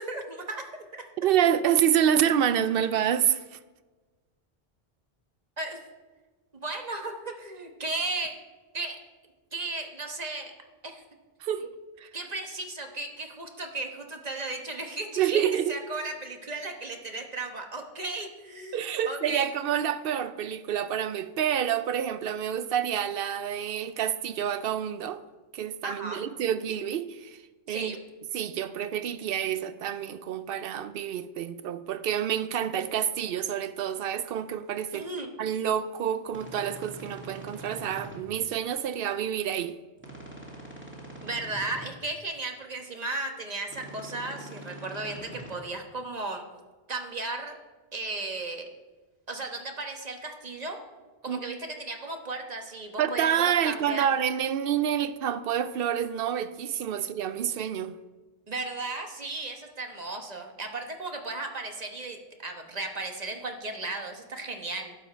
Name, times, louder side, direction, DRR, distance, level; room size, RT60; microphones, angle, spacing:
voice 1, 0.0-1.0 5.6-5.8 6.5-8.4 8.7-9.0 9.5-10.5 10.8-11.0 12.1-19.5 25.8-26.2 27.7-28.0 34.9-35.3 41.2-46.4 46.9-47.6 47.9-48.6 49.3-50.8 51.2-54.1 58.5-65.0, right 2 dB, 40° right, 1.2 m, -35 dB
voice 2, 1.2-3.4 11.4-11.7 12.0-12.1 15.2-15.8 18.7-25.2 25.5-27.4 27.7-28.0 28.3-35.1 35.4-39.8 51.3-51.4 53.0-57.9, right 9 dB, 70° right, 0.7 m, -28 dB
sound 1, 36.3-38.2 40.0-41.9 43.7-45.5, right 1 dB, 10° right, 2.4 m, -43 dB
11.5 x 7.6 x 4.4 m
omnidirectional pair, 1.1 m